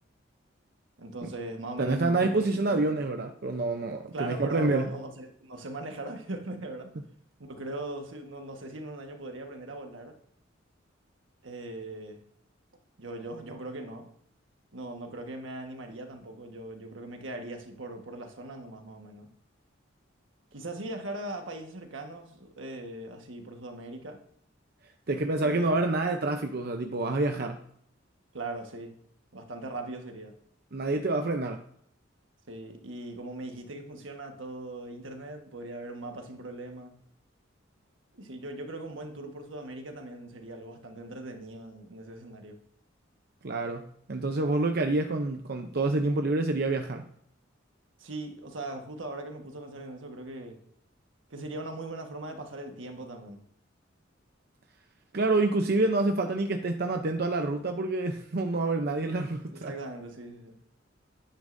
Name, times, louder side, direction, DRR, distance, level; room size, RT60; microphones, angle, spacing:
voice 1, 1.0-3.1 4.1-6.9 7.5-10.2 11.4-12.2 13.0-14.1 14.7-19.3 20.5-24.2 25.4-25.6 28.3-28.9 29.3-30.3 32.5-36.9 38.1-42.6 48.0-50.6 51.3-53.4 59.5-60.6, right 2 dB, 80° right, 4 dB, 1.4 m, -40 dB
voice 2, 1.8-4.9 25.1-27.6 30.7-31.6 43.4-47.0 55.1-59.7, right 2 dB, 55° right, 5 dB, 0.7 m, -27 dB
10.5 x 9.9 x 2.6 m, 0.67 s
head